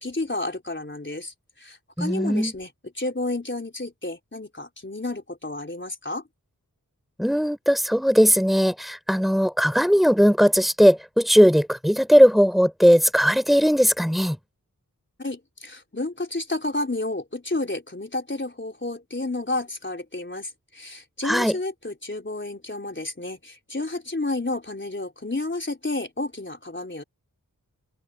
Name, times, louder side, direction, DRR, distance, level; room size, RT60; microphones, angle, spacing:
voice 1, 0.0-2.7 3.0-6.2 15.2-27.0, left 2 dB, 35° left, 3.9 m, -31 dB
voice 2, 2.0-2.5 7.2-14.4 21.2-21.5, equal, ahead, 3.9 m, -18 dB
wide cardioid pair, 65°, 35 cm